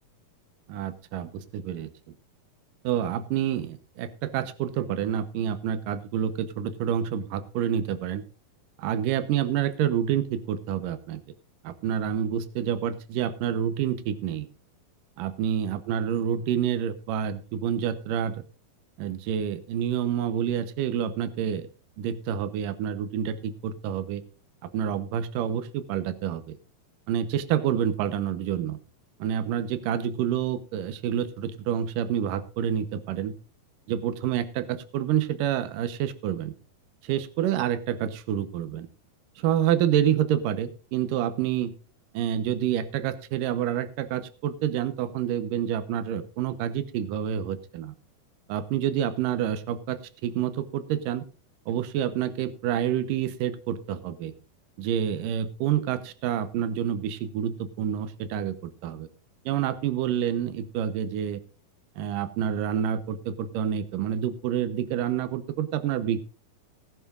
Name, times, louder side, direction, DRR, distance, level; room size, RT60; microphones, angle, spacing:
voice 1, 0.7-1.9 2.8-8.2 8.8-11.2 11.6-14.5 15.2-18.4 19.0-21.7 22.0-24.2 24.7-26.6 27.1-28.8 29.2-33.4 33.9-36.5 37.0-38.9 39.4-41.7 42.1-47.9 48.5-51.2 51.7-54.3 54.8-58.6 58.8-59.1 59.5-61.4 62.0-66.2, right 9 dB, 70° right, 13 dB, 2.4 m, -28 dB
19.5 x 11.0 x 2.5 m, 0.35 s
omnidirectional pair, 4.5 m